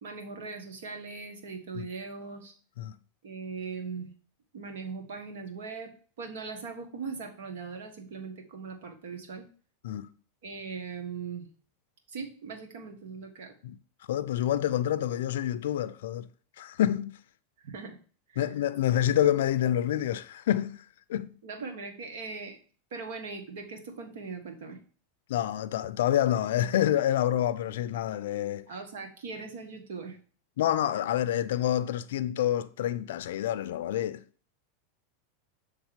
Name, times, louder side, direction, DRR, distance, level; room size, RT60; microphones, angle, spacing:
voice 1, 0.0-2.5 3.2-4.1 4.5-5.9 6.2-9.5 10.4-11.5 12.1-13.6 17.6-18.0 18.3-18.4 21.4-22.6 22.9-24.8 28.7-30.2, right 4 dB, 75° right, 1.5 m, -40 dB
voice 2, 14.1-16.3 16.6-17.1 18.4-20.8 21.1-21.4 25.3-28.7 30.6-34.2, left 11 dB, 75° left, 0.4 m, -27 dB
7.2 x 3.4 x 5.1 m
hypercardioid pair, 115°, 0 cm